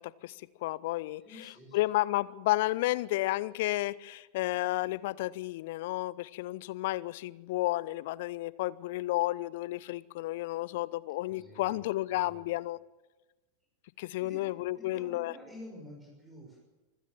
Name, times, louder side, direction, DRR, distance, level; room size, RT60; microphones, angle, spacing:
voice 1, 0.6-12.8 14.0-15.3, left 17 dB, 50° left, 0.7 m, -32 dB
voice 2, 1.2-1.8 11.3-12.5 14.0-16.6, equal, 15° right, 6.7 m, -50 dB
26.0 x 16.0 x 7.3 m
figure-of-eight pair, 90°, 0 cm